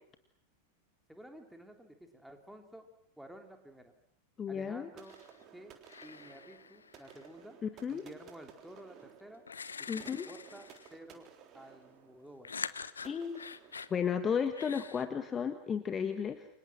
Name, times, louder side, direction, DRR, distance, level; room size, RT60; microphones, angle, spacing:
voice 1, 1.1-2.9 3.2-3.9 4.5-5.2 5.5-5.7 6.0-7.6 7.9-9.4 9.8-12.5, right 1 dB, ahead, 5 dB, 3.5 m, -52 dB
voice 2, 4.4-4.9 7.6-8.0 9.9-10.3 13.0-13.4 13.9-16.5, left 7 dB, 20° left, 9 dB, 1.5 m, -33 dB
sound 1, 5.0-5.4 5.9-7.3 8.8-8.9 9.5-11.0 12.4-14.0 14.6-15.0, left 5 dB, 75° left, 1.1 m, -45 dB
sound 2, 5.0-14.6, right 8 dB, 35° right, 3.7 m, -57 dB
30.0 x 25.0 x 6.2 m, 0.68 s
figure-of-eight pair, 90°, 0 cm